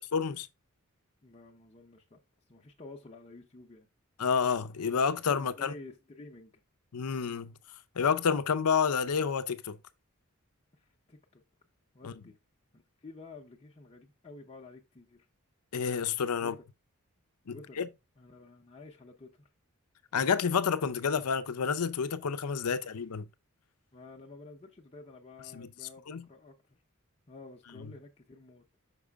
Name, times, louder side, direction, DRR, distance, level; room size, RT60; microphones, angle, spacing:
voice 1, 0.1-0.5 4.2-5.7 6.9-7.5 8.0-9.8 12.0-12.1 15.7-16.6 17.5-17.9 20.1-23.3 25.5-25.7 26.1-26.3 27.8-27.9, left 6 dB, 85° left, 0.6 m, -29 dB
voice 2, 1.2-2.2 2.5-3.9 5.3-6.6 10.7-11.4 11.9-12.4 12.7-15.3 16.4-16.5 17.5-17.8 18.2-19.5 23.9-26.8 27.3-28.6, left 3 dB, 25° left, 0.7 m, -51 dB
6.0 x 5.0 x 3.4 m
head